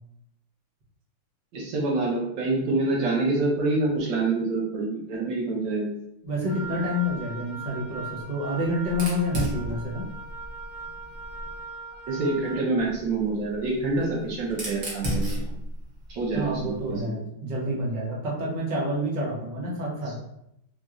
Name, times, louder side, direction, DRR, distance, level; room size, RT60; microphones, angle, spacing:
voice 1, 1.5-5.9 12.1-15.4 16.1-16.6 16.9-17.2, right 3 dB, 65° right, -3 dB, 1.5 m, -26 dB
voice 2, 6.2-10.1 16.3-20.1, equal, 85° right, -4 dB, 0.3 m, -28 dB
Wind instrument woodwind instrument, 6.5-12.7, right 4 dB, 55° left, 0.5 m, -40 dB
Fire, 8.9-11.6 12.8-17.0, left 1 dB, 50° right, 1.1 m, -34 dB
4.2 x 2.9 x 2.4 m, 0.79 s
omnidirectional pair, 2.2 m